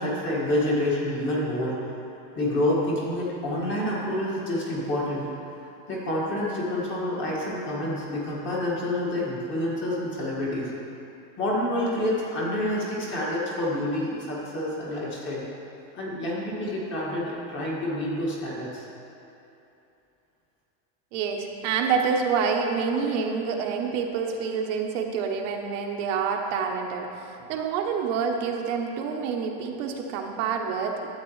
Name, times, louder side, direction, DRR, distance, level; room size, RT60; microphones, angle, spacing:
voice 1, 0.0-1.8 2.4-5.4 5.9-10.7 11.4-15.4 15.9-18.9, left 1 dB, 25° left, -5 dB, 1.8 m, -28 dB
voice 2, 21.1-27.1 27.5-30.9, right 6 dB, 60° right, 2 dB, 0.9 m, -27 dB
12.5 x 8.0 x 3.1 m, 2.9 s
cardioid pair, 175°, 42 cm